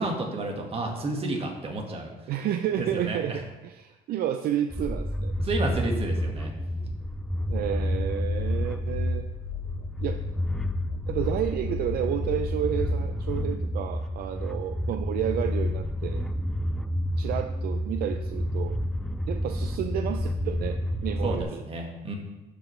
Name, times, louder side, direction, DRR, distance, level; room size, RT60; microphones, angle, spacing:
voice 1, 0.0-2.1 2.8-3.4 5.4-6.5 21.2-22.1, right 2 dB, 35° right, 1 dB, 1.7 m, -31 dB
voice 2, 2.3-5.3 7.5-9.3 10.0-10.2 11.1-16.2 17.2-18.8 19.3-21.6, right 10 dB, 65° right, 7 dB, 0.5 m, -31 dB
sound 1, 4.7-21.4, equal, 5° left, 0.4 m, -30 dB
sound 2, 8.2-13.5, left 14 dB, 80° left, 0.4 m, -38 dB
12.0 x 5.0 x 3.2 m, 1.1 s
cardioid pair, 110°, 17 cm